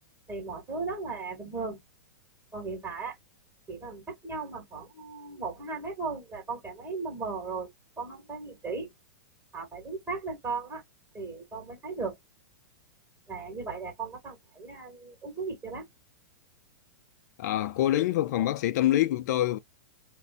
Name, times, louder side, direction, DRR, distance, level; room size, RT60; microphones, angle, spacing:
voice 1, 0.3-1.8 2.5-3.2 3.7-7.7 8.0-8.9 9.5-10.8 11.1-12.2 13.3-15.9, right 4 dB, 20° right, 1.4 m, -36 dB
voice 2, 17.4-19.6, left 13 dB, 60° left, 0.3 m, -25 dB
2.5 x 2.1 x 3.5 m
hypercardioid pair, 135°, 10 cm